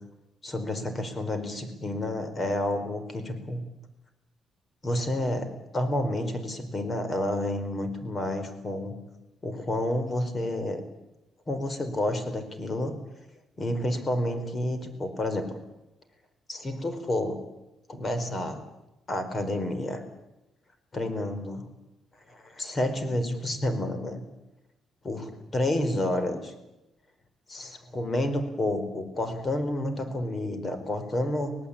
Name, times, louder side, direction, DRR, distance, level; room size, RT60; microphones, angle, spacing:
voice 1, 0.4-3.6 4.8-9.0 9.4-10.8 11.5-12.9 13.6-15.6 16.5-17.4 17.9-18.6 19.1-20.0 20.9-21.7 22.3-24.2 25.0-26.5 27.5-31.6, left 1 dB, 35° left, 9 dB, 4.6 m, -30 dB
25.5 x 18.5 x 8.7 m, 0.95 s
cardioid pair, 90°, 0 cm